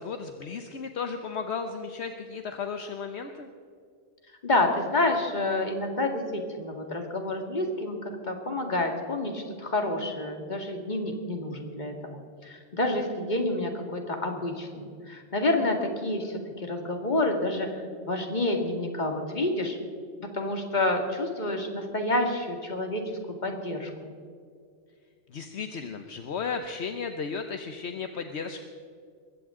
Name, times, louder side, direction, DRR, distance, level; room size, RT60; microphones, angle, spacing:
voice 1, 0.0-3.5 25.3-28.6, left 5 dB, 70° left, 7 dB, 1.1 m, -34 dB
voice 2, 4.4-19.8 20.2-24.1, left 2 dB, 40° left, 3 dB, 2.2 m, -29 dB
21.5 x 16.0 x 3.8 m, 2.2 s
omnidirectional pair, 1.2 m